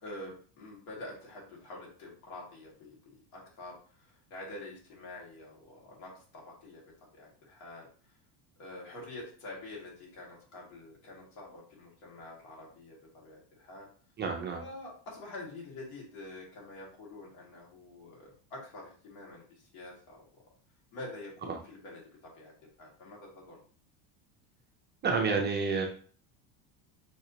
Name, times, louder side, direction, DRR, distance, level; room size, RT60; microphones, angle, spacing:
voice 1, 0.0-7.9 8.6-13.9 14.6-20.4 20.9-22.5 22.8-23.6, left 2 dB, 70° left, -3 dB, 2.0 m, -47 dB
voice 2, 14.2-14.6 21.5-21.6 25.0-25.8, right 4 dB, 25° right, 1 dB, 0.5 m, -29 dB
5.9 x 2.8 x 2.7 m, 0.43 s
cardioid pair, 135°, 46 cm